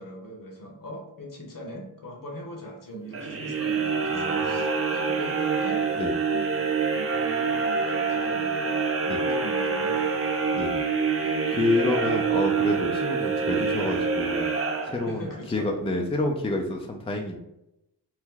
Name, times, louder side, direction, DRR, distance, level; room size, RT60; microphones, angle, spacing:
voice 1, 0.0-5.8 6.2-10.7 15.0-15.7, equal, 50° left, 1 dB, 1.1 m, -41 dB
sound 1, 3.1-15.4, right 5 dB, 30° right, 0.6 m, -26 dB
voice 2, 4.1-4.6 5.9-6.1 9.1-9.2 10.5-10.8 11.5-14.5 14.8-17.4, left 2 dB, 15° left, 1 dB, 0.5 m, -28 dB
2.9 x 2.1 x 3.7 m, 0.87 s
cardioid pair, 50°, 43 cm